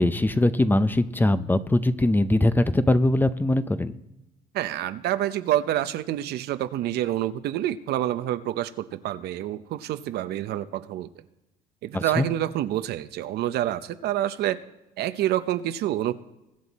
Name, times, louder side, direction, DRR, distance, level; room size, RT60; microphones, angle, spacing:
voice 1, 0.0-3.9 11.9-12.3, left 1 dB, 10° left, 12 dB, 0.6 m, -21 dB
voice 2, 4.5-11.1 11.8-14.6 15.0-16.1, right 12 dB, 75° right, 11 dB, 0.7 m, -27 dB
22.0 x 7.9 x 4.1 m, 0.95 s
cardioid pair, 110°, 17 cm